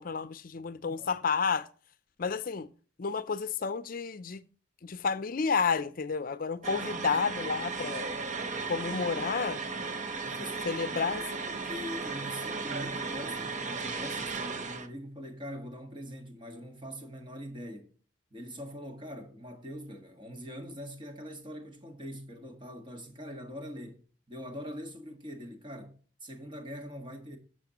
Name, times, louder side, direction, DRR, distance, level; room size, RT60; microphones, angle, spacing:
voice 1, 0.0-1.7 2.2-2.7 3.0-4.4 4.8-8.1 8.7-9.6 10.7-11.2, left 5 dB, 50° left, 0.5 m, -31 dB
sound 1, 6.6-14.9, right 4 dB, 45° right, 0.9 m, -35 dB
voice 2, 10.2-17.9 18.3-24.0 24.3-27.4, equal, 30° right, 1.7 m, -43 dB
12.0 x 7.2 x 3.0 m
head